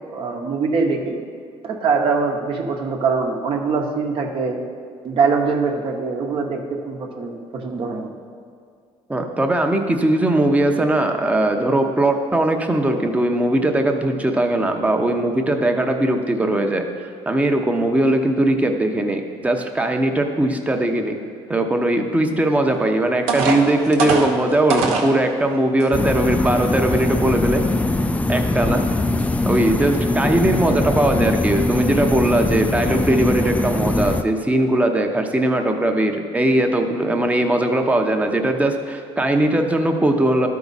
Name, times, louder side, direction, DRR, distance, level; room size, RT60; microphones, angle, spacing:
voice 1, 0.1-1.2 1.6-4.6 5.0-8.1, right 4 dB, 55° right, 2 dB, 0.9 m, -23 dB
voice 2, 9.1-16.9 17.3-21.2 21.5-27.6 28.0-28.9 29.4-40.5, right 1 dB, 15° right, 4 dB, 0.7 m, -20 dB
sound 1, 22.7-22.8 23.3-25.1 25.8-25.9 26.4-26.6, right 4 dB, 80° right, 0.9 m, -22 dB
sound 2, 25.9-34.2, left 2 dB, 10° left, 0.4 m, -21 dB
12.0 x 4.7 x 4.1 m, 2.2 s
cardioid pair, 95°, 11 cm